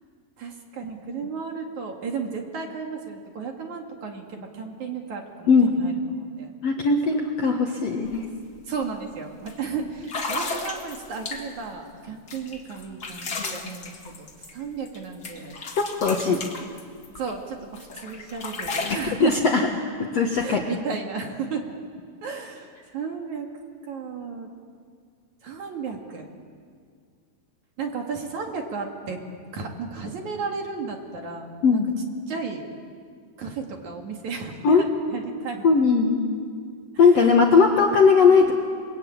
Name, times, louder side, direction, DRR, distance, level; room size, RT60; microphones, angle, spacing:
voice 1, 0.4-6.5 8.7-15.6 16.3-16.5 17.2-19.4 20.4-21.6 22.2-23.5 23.8-24.5 25.4-26.3 27.8-29.2 29.5-31.8 32.3-32.7 33.4-35.6 37.0-37.1, right 5 dB, 55° right, 2 dB, 2.9 m, -33 dB
voice 2, 6.6-8.3 13.4-13.5 15.8-16.4 18.9-19.6 20.1-20.6 31.6-31.9 34.6-34.8 35.6-36.2 37.0-38.5, left 5 dB, 55° left, 1 dB, 1.9 m, -19 dB
sound 1, 8.0-8.2 8.5-8.8 9.5-9.6 10.0-11.7 12.3-15.0 15.2-17.3 17.7-19.1, left 3 dB, 40° left, 1.5 m, -34 dB
29.0 x 22.0 x 8.7 m, 2.1 s
omnidirectional pair, 4.7 m